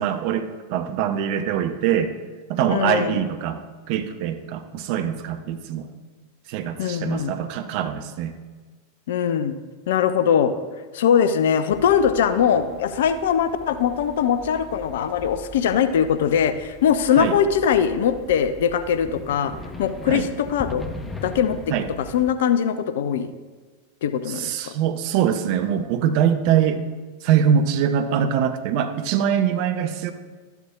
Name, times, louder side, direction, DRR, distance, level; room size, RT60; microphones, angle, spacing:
voice 1, 0.0-2.1 2.5-3.6 3.9-5.9 6.5-8.4 17.2-17.3 20.1-20.3 21.7-21.9 24.3-26.8 27.2-30.1, right 9 dB, 45° right, 8 dB, 0.7 m, -23 dB
voice 2, 2.7-3.2 6.8-7.4 9.1-9.6 9.9-10.5 10.9-19.5 19.8-20.9 21.2-21.6 22.0-23.3 24.0-24.7, left 8 dB, 55° left, 12 dB, 0.6 m, -21 dB
sound 1, 11.7-22.3, left 2 dB, 10° left, 0.8 m, -40 dB
13.0 x 11.5 x 2.4 m, 1.4 s
figure-of-eight pair, 90°, 0 cm